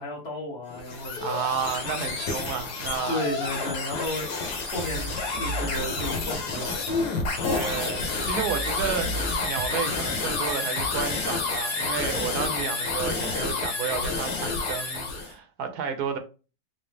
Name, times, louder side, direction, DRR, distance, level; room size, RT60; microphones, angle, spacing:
voice 1, 0.0-1.4 3.1-4.4 4.7-6.8, left 1 dB, 45° left, 1.1 m, -33 dB
sound 1, 0.7-15.3, left 3 dB, 75° left, 1.5 m, -29 dB
voice 2, 1.2-3.3 7.5-9.1 9.4-16.2, right 7 dB, 75° right, 1.2 m, -31 dB
sound 2, 4.8-11.9, right 3 dB, 60° right, 0.7 m, -37 dB
3.9 x 2.8 x 3.4 m
omnidirectional pair, 1.7 m